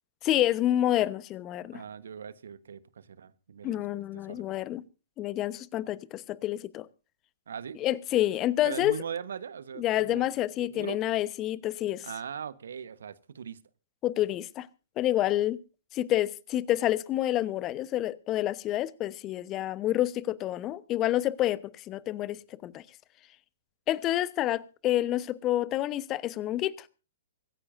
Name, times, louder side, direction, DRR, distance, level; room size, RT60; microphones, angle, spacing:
voice 1, 0.2-1.8 3.6-4.8 5.2-6.9 7.8-8.9 9.8-12.1 14.0-14.7 15.0-15.6 15.9-22.8 23.9-26.9, left 13 dB, 30° left, 1.0 m, -28 dB
voice 2, 1.7-4.4 7.5-7.8 8.6-10.3 10.6-11.0 12.0-13.6, right 7 dB, 65° right, 1.2 m, -40 dB
25.0 x 14.5 x 2.6 m
figure-of-eight pair, 115°, 0 cm